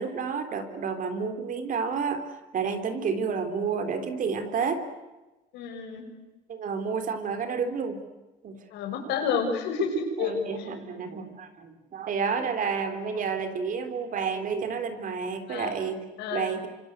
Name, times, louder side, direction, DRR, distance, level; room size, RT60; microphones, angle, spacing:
voice 1, 0.0-2.2 2.5-4.8 6.5-8.0 8.4-8.6 10.2-16.0 16.3-16.7, right 5 dB, 50° right, 8 dB, 3.6 m, -30 dB
voice 2, 5.5-6.0 8.7-10.3 10.6-10.7 15.5-15.7 16.2-16.5, left 5 dB, 85° left, 4 dB, 6.4 m, -29 dB
28.0 x 25.5 x 8.2 m, 1.1 s
cardioid pair, 110°, 17 cm